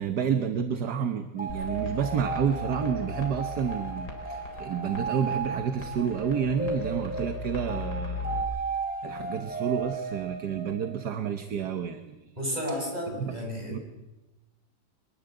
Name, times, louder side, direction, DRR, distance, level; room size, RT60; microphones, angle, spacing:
voice 1, 0.0-8.4 9.0-12.2 13.2-13.4 13.7-13.8, right 7 dB, 60° right, 9 dB, 1.7 m, -30 dB
sound 1, 1.4-11.1, right 4 dB, 5° right, 2.9 m, -35 dB
sound 2, 1.5-8.4, left 5 dB, 55° left, 4.6 m, -39 dB
voice 2, 12.4-13.8, equal, 20° right, 0 dB, 7.1 m, -32 dB
24.0 x 21.0 x 8.0 m, 1.0 s
omnidirectional pair, 2.1 m